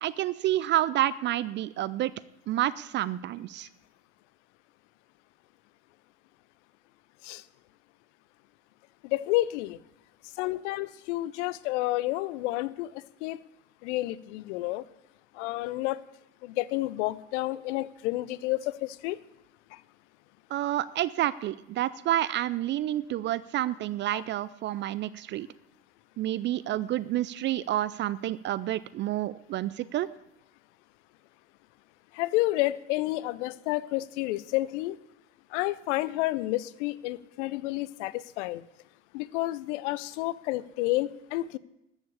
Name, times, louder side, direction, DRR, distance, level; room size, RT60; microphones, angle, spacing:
voice 1, 0.0-2.1 2.5-3.7 20.5-25.5 26.2-30.1, right 13 dB, 30° right, 17 dB, 0.4 m, -29 dB
voice 2, 9.0-9.8 10.4-12.9 13.2-13.4 13.8-14.8 15.4-16.0 16.4-19.2 24.1-24.2 32.1-35.0 35.5-38.6 39.1-41.6, left 18 dB, 60° left, 20 dB, 0.7 m, -30 dB
13.5 x 7.2 x 8.4 m, 0.85 s
hypercardioid pair, 80°, 41 cm